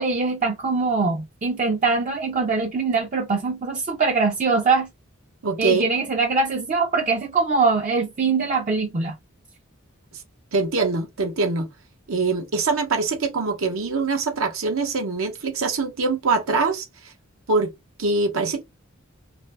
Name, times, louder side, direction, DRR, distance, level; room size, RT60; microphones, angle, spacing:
voice 1, 0.0-4.9 5.6-9.2, right 4 dB, 35° right, 0.5 m, -22 dB
voice 2, 5.4-5.8 10.5-11.7 12.1-16.9 17.5-17.7 18.0-18.6, right 4 dB, 75° right, 0.8 m, -23 dB
2.6 x 2.6 x 3.2 m
head